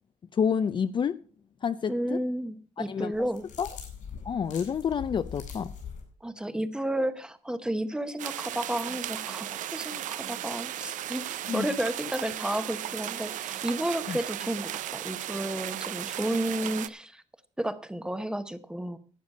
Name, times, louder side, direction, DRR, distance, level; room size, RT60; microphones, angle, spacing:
voice 1, 0.3-1.2 1.6-2.2 2.8-3.1 3.6-3.7 4.2-5.7 11.5-11.7 14.1-14.2, left 7 dB, 40° left, 0.4 m, -28 dB
voice 2, 1.9-3.5 6.2-17.2 17.6-19.0, right 1 dB, 5° right, 0.8 m, -32 dB
sound 1, 3.1-6.0, left 7 dB, 85° left, 4.6 m, -42 dB
sound 2, 8.2-16.9, right 12 dB, 85° right, 0.5 m, -36 dB
12.0 x 8.2 x 5.3 m
cardioid pair, 125°, 13 cm